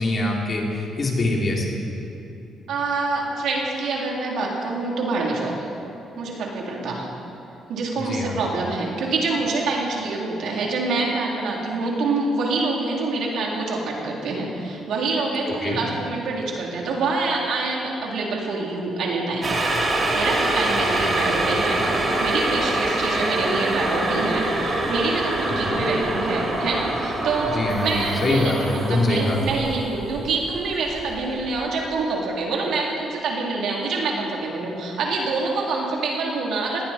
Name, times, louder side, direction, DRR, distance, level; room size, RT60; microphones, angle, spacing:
voice 1, 0.0-1.7 8.0-8.3 15.6-15.8 20.8-21.1 21.5-21.9 25.5-25.8 27.5-29.4, left 2 dB, 40° left, -1 dB, 3.4 m, -24 dB
voice 2, 2.7-5.7 6.2-7.1 7.7-19.6 20.1-36.8, right 3 dB, 75° right, -2 dB, 3.4 m, -26 dB
sound 1, 19.4-31.5 31.8-31.9, right 2 dB, 35° right, 3.4 m, -25 dB
19.5 x 16.5 x 4.4 m, 2.9 s
cardioid pair, 90°, 0 cm